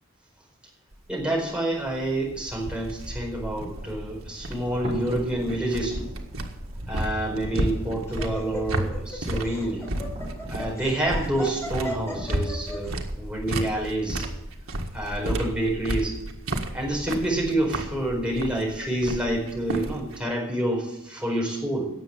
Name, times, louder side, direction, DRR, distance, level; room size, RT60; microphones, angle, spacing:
sound 1, 0.9-20.2, right 1 dB, 85° right, 1.8 m, -33 dB
voice 1, 1.1-6.1 6.9-9.9 10.5-14.3 14.9-16.2 16.7-21.9, right 1 dB, 5° right, -2 dB, 4.5 m, -28 dB
sound 2, 3.7-12.5, equal, 30° right, 5.5 m, -42 dB
Laughter, 7.5-12.9, equal, 15° left, 3.6 m, -37 dB
18.0 x 7.1 x 7.3 m, 0.88 s
head